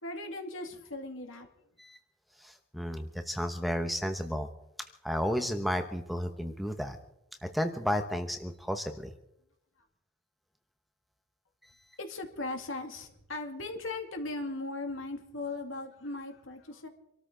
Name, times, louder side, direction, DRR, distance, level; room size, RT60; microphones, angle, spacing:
voice 1, 0.0-1.5 12.0-16.9, left 2 dB, 70° left, 4 dB, 2.3 m, -38 dB
voice 2, 2.4-4.5 5.0-7.0 7.4-9.1, equal, ahead, 6 dB, 0.9 m, -32 dB
25.5 x 13.5 x 3.9 m, 0.81 s
head